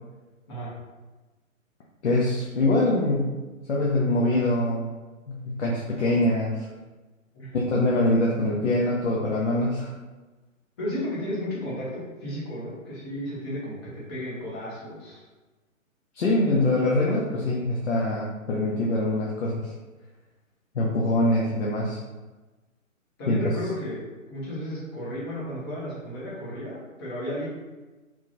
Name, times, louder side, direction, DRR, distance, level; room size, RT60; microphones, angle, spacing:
voice 1, 2.0-3.4 3.7-4.9 5.3-6.7 7.5-9.9 16.1-19.7 20.7-22.0 23.3-23.5, left 1 dB, 60° left, -4 dB, 0.7 m, -24 dB
voice 2, 10.8-15.2 23.2-27.5, left 1 dB, 20° left, -7 dB, 0.9 m, -33 dB
3.5 x 3.1 x 2.5 m, 1.2 s
figure-of-eight pair, 140°, 40 cm